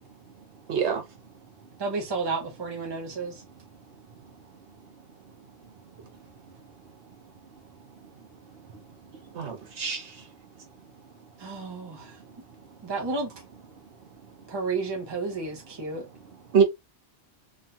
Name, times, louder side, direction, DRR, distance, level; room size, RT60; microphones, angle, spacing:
voice 1, 0.0-0.6 1.3-1.8 3.0-9.7 9.9-12.9 13.7-14.5 15.9-16.5, right 5 dB, 60° right, 0.9 m, -52 dB
voice 2, 0.7-1.0 9.3-10.1 16.5-16.6, right 6 dB, 80° right, 1.3 m, -24 dB
voice 3, 1.8-3.4 11.4-12.1 12.8-13.3 14.5-16.1, right 3 dB, 30° right, 0.6 m, -31 dB
3.0 x 2.3 x 2.7 m
omnidirectional pair, 1.1 m